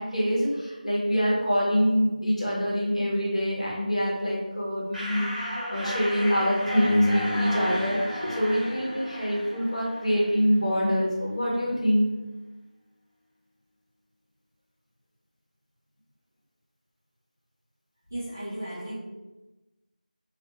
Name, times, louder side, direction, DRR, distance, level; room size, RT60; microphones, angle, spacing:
voice 1, 0.0-12.1, equal, 50° left, -5 dB, 1.0 m, -25 dB
sound 1, 4.9-10.5, equal, 70° right, 1.0 m, -34 dB
sound 2, 6.8-11.3, left 1 dB, 90° left, 0.6 m, -35 dB
voice 2, 18.1-19.0, right 1 dB, 20° right, -9 dB, 0.4 m, -35 dB
2.5 x 2.4 x 2.7 m, 1.1 s
figure-of-eight pair, 175°, 5 cm